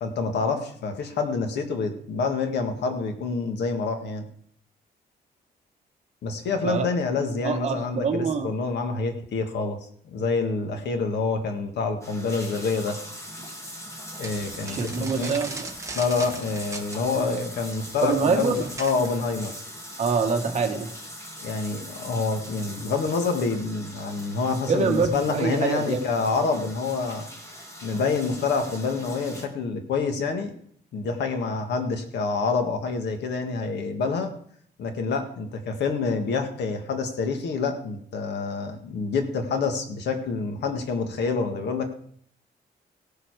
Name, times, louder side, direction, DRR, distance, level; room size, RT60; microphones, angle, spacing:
voice 1, 0.0-4.2 6.2-9.8 10.0-13.0 14.2-15.3 15.9-19.5 21.4-27.3 27.8-30.5 30.9-34.3 34.8-41.9, left 4 dB, 90° left, 5 dB, 1.8 m, -27 dB
voice 2, 7.4-8.5 14.7-15.7 17.1-17.4 18.0-18.7 20.0-20.9 24.7-26.0 26.2-26.4, right 5 dB, 40° right, 3 dB, 1.5 m, -25 dB
sound 1, 12.0-29.5, equal, 15° left, 1.9 m, -41 dB
sound 2, 14.2-19.3, right 3 dB, 15° right, 1.1 m, -39 dB
17.5 x 7.0 x 4.8 m, 0.63 s
wide cardioid pair, 165°, 17 cm